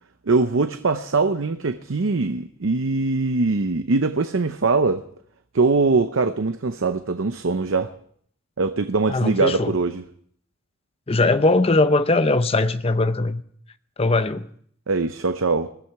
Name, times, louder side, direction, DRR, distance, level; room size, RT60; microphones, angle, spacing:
voice 1, 0.3-5.0 5.5-7.9 8.6-10.0 14.9-15.7, right 3 dB, 65° right, 0.7 m, -22 dB
voice 2, 9.1-9.8 11.1-13.4 14.0-14.5, left 2 dB, 25° left, 0.6 m, -20 dB
20.5 x 13.5 x 4.7 m
head